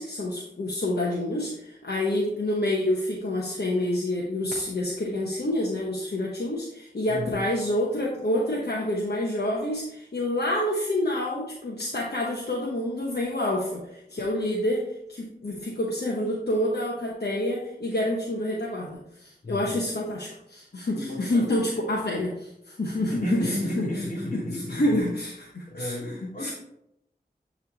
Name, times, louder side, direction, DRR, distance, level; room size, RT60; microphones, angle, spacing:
voice 1, 0.0-23.9 24.3-26.5, left 1 dB, 70° left, -3 dB, 1.0 m, -28 dB
voice 2, 7.1-7.4 19.4-19.7 20.9-21.4 23.1-25.0 25.7-26.5, left 1 dB, 55° left, -2 dB, 2.5 m, -32 dB
9.6 x 3.3 x 4.0 m, 0.81 s
wide cardioid pair, 45°, 17 cm